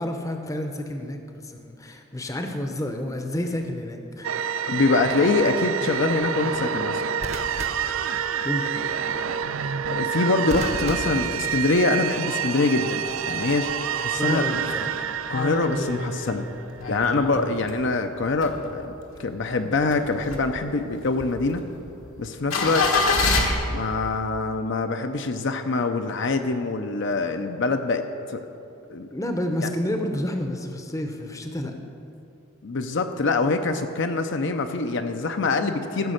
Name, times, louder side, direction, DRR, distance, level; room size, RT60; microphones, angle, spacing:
voice 1, 0.0-4.3 8.4-8.9 14.2-15.0 19.1-19.3 29.1-31.7, left 1 dB, 15° left, 5 dB, 0.7 m, -30 dB
sound 1, 3.3-3.7 7.2-8.7 10.5-12.2 13.4-13.7, right 1 dB, 30° right, 0.7 m, -36 dB
sound 2, 4.2-16.8, right 7 dB, 70° right, 0.4 m, -28 dB
voice 2, 4.7-7.0 9.9-13.7 14.0-14.5 15.3-16.5 16.9-18.9 19.2-21.6 22.2-23.0 23.7-28.4 28.9-29.1 32.6-36.1, left 3 dB, 55° left, 7 dB, 0.5 m, -24 dB
sound 3, 13.1-13.7 14.1-14.2 14.4-17.9 18.2-19.2 19.6-23.5, left 3 dB, 75° left, 1.3 m, -26 dB
14.0 x 6.2 x 6.5 m, 2.7 s
head